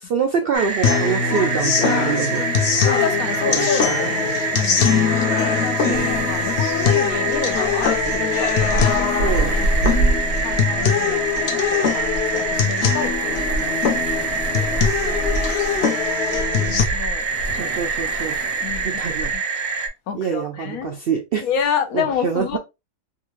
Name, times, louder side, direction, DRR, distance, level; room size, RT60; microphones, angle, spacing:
voice 1, 0.0-2.4 3.5-4.0 4.2-4.3 5.8-6.1 9.2-9.6 17.6-18.3 18.8-19.3 20.1-21.5 21.9-22.6, right 7 dB, 70° right, 0.5 m, -25 dB
sound 1, 0.5-19.9, right 4 dB, 90° right, 1.4 m, -26 dB
sound 2, 0.8-16.8, left 7 dB, 60° left, 0.7 m, -22 dB
voice 2, 2.8-9.2 9.5-9.6 10.4-14.8 16.6-17.2 18.2-19.4 20.1-21.0 21.4-22.6, left 7 dB, 75° left, 1.1 m, -30 dB
sound 3, 5.9-19.4, right 2 dB, 40° left, 1.2 m, -28 dB
3.6 x 2.4 x 3.0 m
omnidirectional pair, 1.5 m